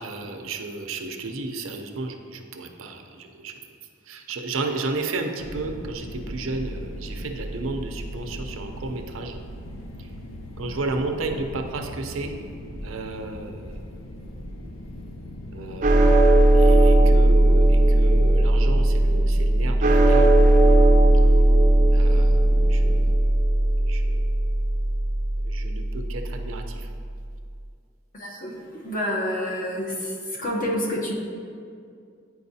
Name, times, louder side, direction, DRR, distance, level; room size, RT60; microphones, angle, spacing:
voice 1, 0.0-3.5 4.1-9.4 10.6-12.3 12.8-13.8 15.5-16.1 16.5-20.3 21.9-22.4 22.7-23.1 23.8-24.2 25.4-26.9, right 3 dB, 85° right, 4 dB, 0.6 m, -33 dB
sound 1, 5.4-23.1, equal, 85° left, 0.6 m, -39 dB
sound 2, 15.8-26.2, right 1 dB, 40° right, 0.5 m, -17 dB
voice 2, 28.1-31.1, equal, 45° left, -2 dB, 1.0 m, -28 dB
9.3 x 4.6 x 2.7 m, 2.3 s
head